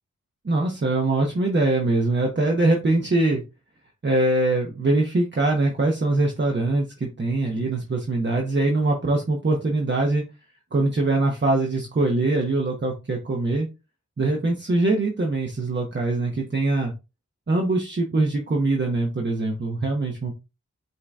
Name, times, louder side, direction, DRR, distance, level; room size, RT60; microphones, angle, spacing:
voice 1, 0.4-3.4 4.0-10.2 10.7-13.7 14.2-16.9 17.5-20.3, right 2 dB, 35° right, 1 dB, 1.0 m, -23 dB
5.5 x 2.8 x 3.5 m, 0.27 s
wide cardioid pair, 100°, 30 cm